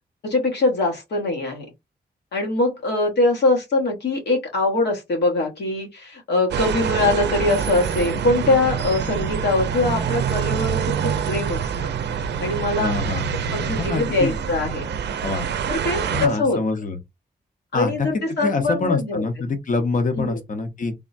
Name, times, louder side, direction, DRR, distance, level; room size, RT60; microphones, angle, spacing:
voice 1, 0.2-1.6 2.3-11.7 12.4-12.9 13.3-14.9 15.7-16.6 17.7-19.2 20.1-20.4, left 2 dB, 85° left, 1.3 m, -22 dB
sound 1, 6.5-16.3, right 8 dB, 90° right, 0.5 m, -26 dB
voice 2, 12.8-14.4 15.2-15.5 16.1-17.0 17.7-20.9, left 3 dB, 50° left, 0.8 m, -25 dB
3.4 x 2.1 x 2.5 m
wide cardioid pair, 100°, 17 cm